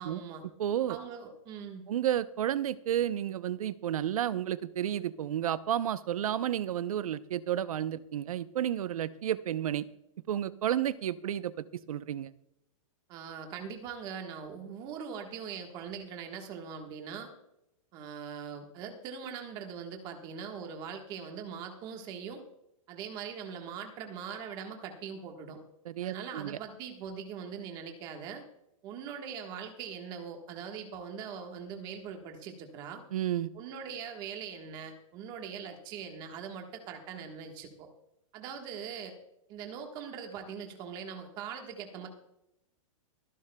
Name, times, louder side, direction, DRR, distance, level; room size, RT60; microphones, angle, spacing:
voice 1, 0.0-0.4 0.9-1.8 13.1-17.3 17.9-22.4 22.9-25.6 26.0-28.4 28.8-33.0 33.5-37.9 38.3-39.2 39.5-42.1, right 7 dB, 25° right, 4 dB, 1.4 m, -41 dB
voice 2, 0.6-1.0 1.9-9.8 10.3-12.3 25.9-26.6 33.1-33.5, right 11 dB, 90° right, 15 dB, 0.7 m, -31 dB
24.0 x 11.0 x 2.3 m, 0.84 s
supercardioid pair, 170°, 18 cm